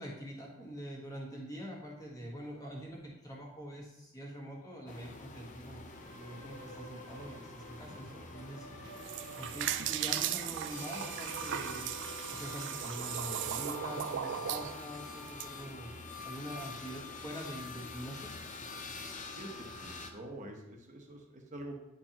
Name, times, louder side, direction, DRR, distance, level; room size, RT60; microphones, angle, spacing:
voice 1, 0.0-8.6 9.4-15.9 16.2-18.3, equal, 15° left, -3 dB, 1.5 m, -45 dB
sound 1, 4.9-20.1, left 3 dB, 35° left, 0.6 m, -46 dB
sound 2, 5.9-15.5, equal, 85° left, 1.3 m, -52 dB
voice 2, 7.9-8.3 19.3-19.5 19.8-21.8, right 1 dB, 35° right, 1 dB, 1.0 m, -46 dB
sound 3, 8.9-15.5, right 10 dB, 55° right, 0.3 m, -37 dB
10.0 x 4.5 x 2.9 m, 0.94 s
head